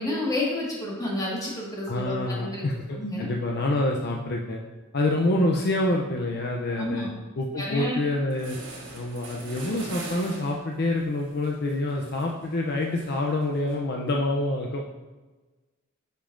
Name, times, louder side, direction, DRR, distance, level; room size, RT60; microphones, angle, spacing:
voice 1, 0.0-2.6 2.9-3.3 6.8-7.1 7.6-8.0, left 1 dB, 20° left, -4 dB, 1.7 m, -30 dB
voice 2, 1.9-4.6 4.9-7.1 7.4-8.6 8.9-14.8, left 2 dB, 55° left, 0 dB, 0.6 m, -27 dB
sound 1, 7.9-8.0 8.3-13.7, right 2 dB, 70° right, 1.8 m, -43 dB
9.8 x 5.3 x 2.6 m, 1.2 s
head